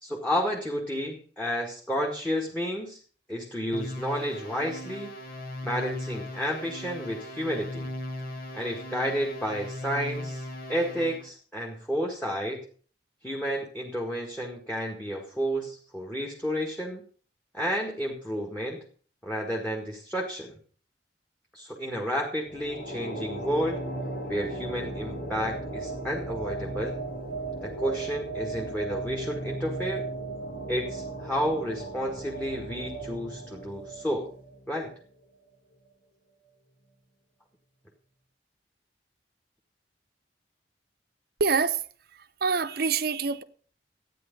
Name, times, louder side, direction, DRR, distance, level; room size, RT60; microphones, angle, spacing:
voice 1, 0.0-3.0 3.3-5.1 5.6-7.9 8.5-12.6 13.2-17.0 17.5-18.8 19.2-20.6 21.5-23.9 24.3-27.0 27.6-30.0 30.7-34.3 34.7-34.9, equal, 10° left, 1.9 m, -31 dB
sound 1, 3.7-11.3, left 1 dB, 55° left, 1.8 m, -38 dB
sound 2, 22.4-35.0, right 2 dB, 85° left, 4.7 m, -36 dB
voice 2, 41.4-41.8 42.4-43.4, right 5 dB, 60° right, 0.8 m, -25 dB
13.0 x 9.4 x 5.4 m
head